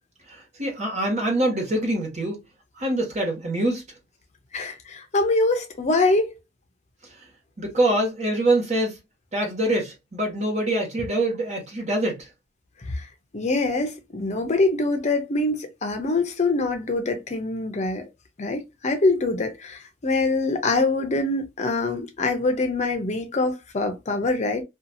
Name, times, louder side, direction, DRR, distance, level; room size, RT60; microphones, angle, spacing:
voice 1, 0.3-2.4 2.8-3.8 7.6-9.0 9.3-12.3, right 1 dB, 40° right, 1.3 m, -24 dB
voice 2, 4.5-6.3 12.9-13.1 13.3-18.0 18.4-24.6, left 2 dB, 40° left, 0.6 m, -24 dB
2.7 x 2.4 x 2.6 m
head